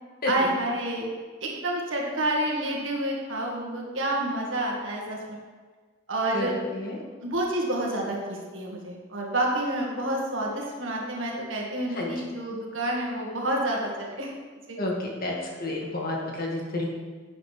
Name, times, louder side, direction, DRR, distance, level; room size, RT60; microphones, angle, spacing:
voice 1, 0.3-1.1 1.4-5.4 6.1-6.5 7.2-14.3 14.7-14.8, right 1 dB, 80° right, -1 dB, 1.8 m, -29 dB
voice 2, 6.3-7.0 11.9-12.1 14.8-15.3 15.6-16.9, left 2 dB, 50° left, -2 dB, 2.0 m, -30 dB
11.0 x 8.3 x 3.4 m, 1.5 s
head